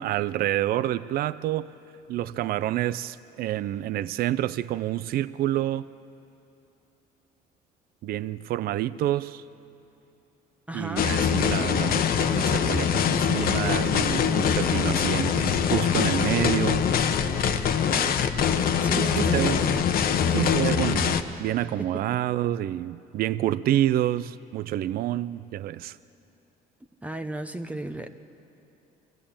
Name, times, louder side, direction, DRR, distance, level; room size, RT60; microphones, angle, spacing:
voice 1, 0.0-1.7 2.1-5.9 8.0-9.4 10.7-16.9 19.0-19.6 20.3-26.0, right 13 dB, 60° right, 16 dB, 0.5 m, -28 dB
voice 2, 10.7-11.1 18.8-20.0 21.8-21.9 27.0-28.1, right 1 dB, 10° right, 8 dB, 0.9 m, -34 dB
sound 1, 11.0-21.2, left 7 dB, 60° left, 1.1 m, -23 dB
24.0 x 15.0 x 8.7 m, 2.7 s
cardioid pair, 110°, 17 cm